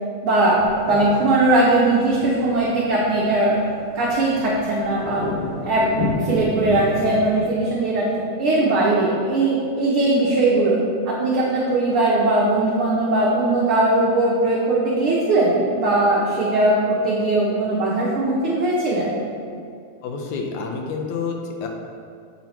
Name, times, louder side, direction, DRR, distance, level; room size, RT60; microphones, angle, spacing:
voice 1, 0.2-3.6 3.9-5.2 5.6-5.9 6.2-10.8 11.1-19.2, right 2 dB, 70° right, -5 dB, 1.3 m, -19 dB
sound 1, 0.6-7.4, left 3 dB, 60° left, 2.0 m, -31 dB
voice 2, 20.0-21.7, left 5 dB, 90° left, 2 dB, 2.1 m, -29 dB
8.0 x 4.5 x 4.2 m, 2.3 s
omnidirectional pair, 3.4 m